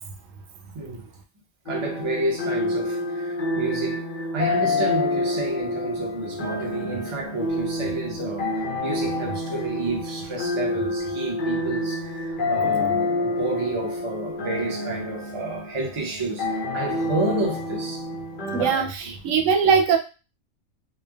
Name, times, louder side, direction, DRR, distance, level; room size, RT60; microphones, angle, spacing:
sound 1, 1.7-18.7, left 2 dB, 60° left, 0.5 m, -28 dB
voice 1, 1.7-18.0 18.6-19.1, right 2 dB, 30° right, 0.6 m, -30 dB
voice 2, 18.5-20.0, right 6 dB, 90° right, 1.0 m, -20 dB
3.2 x 2.1 x 2.2 m
omnidirectional pair, 1.3 m